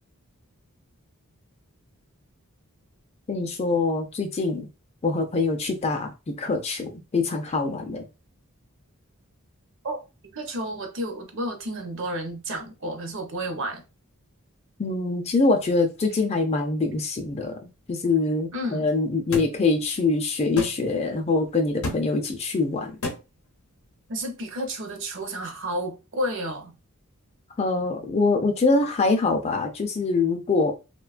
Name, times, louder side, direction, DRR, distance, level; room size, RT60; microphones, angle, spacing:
voice 1, 3.3-4.7 5.0-8.0 14.8-17.6 17.9-23.0 27.6-30.7, left 3 dB, 30° left, 0.3 m, -24 dB
voice 2, 10.3-13.8 18.5-18.9 24.1-26.7, right 1 dB, 55° right, 0.7 m, -31 dB
sound 1, 19.3-19.5 20.6-20.7 21.8-22.0 23.0-23.2, left 2 dB, 75° left, 0.6 m, -28 dB
2.9 x 2.2 x 2.4 m
head